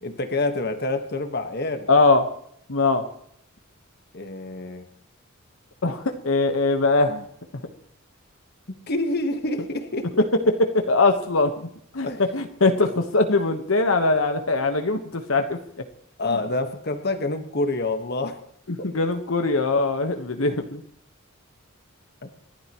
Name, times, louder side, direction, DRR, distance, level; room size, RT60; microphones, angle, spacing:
voice 1, 0.0-1.9 4.1-4.9 8.9-10.3 12.0-12.2 16.2-18.4 22.2-22.3, left 2 dB, 50° left, 7 dB, 1.5 m, -27 dB
voice 2, 1.9-2.2 2.7-3.0 5.8-7.3 10.7-11.7 11.9-12.1 12.3-15.6 18.7-20.8, left 3 dB, 75° left, 6 dB, 1.3 m, -21 dB
28.0 x 11.5 x 3.1 m, 0.69 s
head